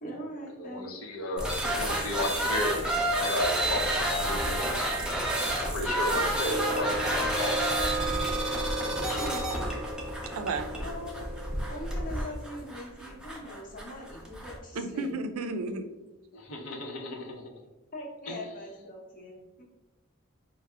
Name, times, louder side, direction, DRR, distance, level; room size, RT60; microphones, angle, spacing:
voice 1, 0.0-0.9 2.7-2.8 9.2-9.6 10.8-11.2 11.7-15.1 17.9-19.6, equal, 40° left, -2 dB, 0.9 m, -41 dB
voice 2, 0.6-2.8 3.2-4.9 5.6-7.6 8.4-9.3 16.3-17.4 18.3-18.4, left 2 dB, 75° left, 2 dB, 0.7 m, -34 dB
sound 1, 1.4-14.6, right 1 dB, 5° right, 0.5 m, -30 dB
sound 2, 6.4-12.7, right 2 dB, 30° right, 0.9 m, -35 dB
voice 3, 10.4-10.7 14.7-15.9, right 3 dB, 80° right, 7 dB, 0.4 m, -32 dB
4.6 x 2.0 x 3.3 m, 1.1 s
head